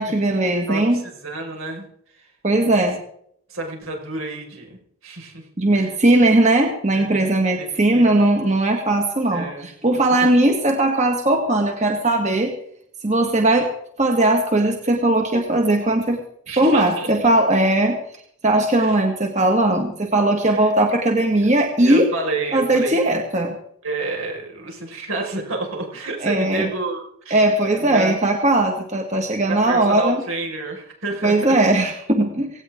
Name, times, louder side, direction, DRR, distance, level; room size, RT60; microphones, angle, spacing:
voice 1, 0.0-1.0 2.4-3.0 5.6-12.5 13.0-13.7 14.0-16.2 16.6-18.0 18.4-22.1 22.5-23.6 26.2-26.7 27.3-30.2 31.2-32.5, right 1 dB, 35° right, 3 dB, 1.8 m, -18 dB
voice 2, 1.1-1.9 2.2-2.3 3.5-4.8 5.0-5.5 5.8-6.0 6.9-7.7 7.9-8.2 9.3-10.3 16.5-17.3 18.8-19.0 20.5-20.7 21.8-23.0 23.8-27.4 27.7-28.2 29.4-31.6, right 3 dB, 80° right, 1 dB, 5.3 m, -30 dB
17.5 x 17.5 x 3.7 m, 0.67 s
head